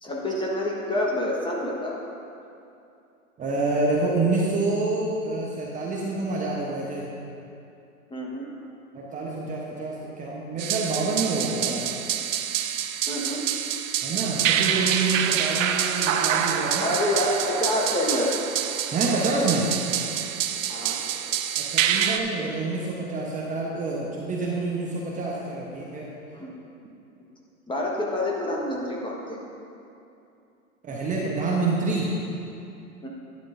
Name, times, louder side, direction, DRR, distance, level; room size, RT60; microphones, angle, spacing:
voice 1, 0.0-2.0 8.1-8.5 13.1-13.4 16.8-18.4 20.7-21.1 26.3-26.5 27.7-29.4 33.0-33.1, left 1 dB, 10° left, -2 dB, 1.3 m, -27 dB
voice 2, 3.4-7.1 8.9-11.8 14.0-16.9 18.9-19.7 21.6-26.1 30.8-32.1, right 3 dB, 20° right, -3 dB, 1.0 m, -27 dB
sound 1, 10.6-22.2, right 9 dB, 65° right, 0.7 m, -26 dB
11.5 x 10.5 x 2.6 m, 2.7 s
hypercardioid pair, 110°, 42 cm